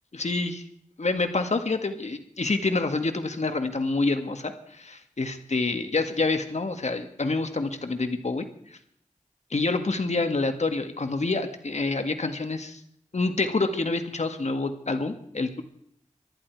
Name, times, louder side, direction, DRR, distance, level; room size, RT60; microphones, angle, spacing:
voice 1, 0.1-0.6 1.0-8.8 9.5-12.8 13.1-15.6, left 3 dB, 60° left, 7 dB, 1.8 m, -27 dB
24.0 x 11.5 x 4.7 m, 0.69 s
wide cardioid pair, 45°, 13 cm